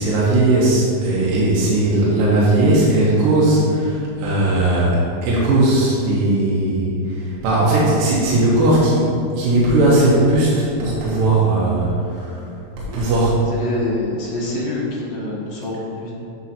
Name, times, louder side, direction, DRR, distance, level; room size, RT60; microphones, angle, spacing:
voice 1, 0.0-9.1 9.4-12.4 12.9-13.4, right 2 dB, 75° right, -7 dB, 2.5 m, -17 dB
voice 2, 13.5-16.1, left 2 dB, 55° left, -6 dB, 2.0 m, -26 dB
8.3 x 6.2 x 2.8 m, 2.6 s
omnidirectional pair, 4.3 m